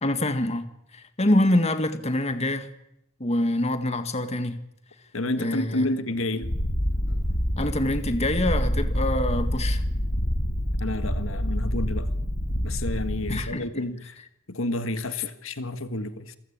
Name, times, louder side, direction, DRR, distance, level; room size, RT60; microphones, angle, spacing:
voice 1, 0.0-2.7 3.2-4.6 5.4-5.9 7.6-9.8 13.3-13.6, left 1 dB, 30° left, 1.8 m, -25 dB
voice 2, 5.1-6.5 10.8-12.1 12.6-14.2 14.5-16.4, left 2 dB, 75° left, 1.8 m, -30 dB
Purr, 6.4-13.4, equal, 60° left, 3.5 m, -27 dB
28.0 x 15.5 x 8.7 m
head